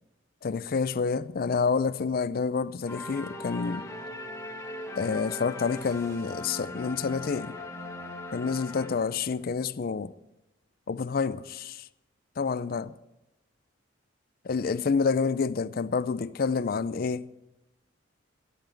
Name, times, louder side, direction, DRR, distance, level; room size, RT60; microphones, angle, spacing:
voice 1, 0.4-3.9 5.0-7.6 8.3-10.1 10.9-11.8 12.4-12.9 14.5-17.3, left 5 dB, 45° left, 0.4 m, -28 dB
sound 1, 2.9-9.5, left 2 dB, 15° left, 1.1 m, -40 dB
13.0 x 12.5 x 4.6 m
head